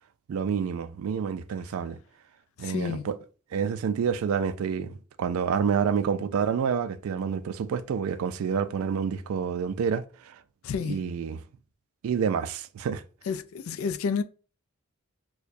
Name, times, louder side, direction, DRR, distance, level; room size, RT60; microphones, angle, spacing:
voice 1, 0.3-2.0 2.6-3.2 3.5-10.4 10.9-11.4 12.0-13.0, right 6 dB, 80° right, 0.3 m, -28 dB
voice 2, 2.6-3.1 10.6-11.0 13.3-14.2, left 6 dB, 80° left, 0.3 m, -30 dB
4.5 x 2.1 x 2.5 m
head